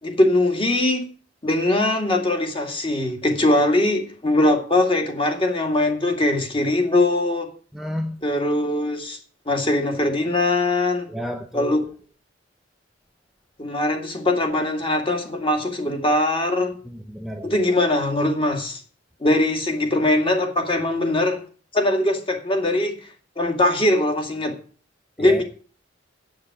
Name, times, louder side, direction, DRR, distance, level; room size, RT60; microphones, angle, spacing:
voice 1, 0.0-1.1 1.4-7.5 8.2-9.2 9.5-11.1 11.5-11.8 13.6-16.8 17.4-18.8 19.2-21.4 21.7-23.0 23.4-24.5 25.2-25.4, left 1 dB, 30° left, 2.2 m, -21 dB
voice 2, 7.7-8.2 11.1-11.8 16.9-17.6 25.2-25.4, equal, ahead, 0.6 m, -31 dB
7.9 x 7.8 x 8.3 m
head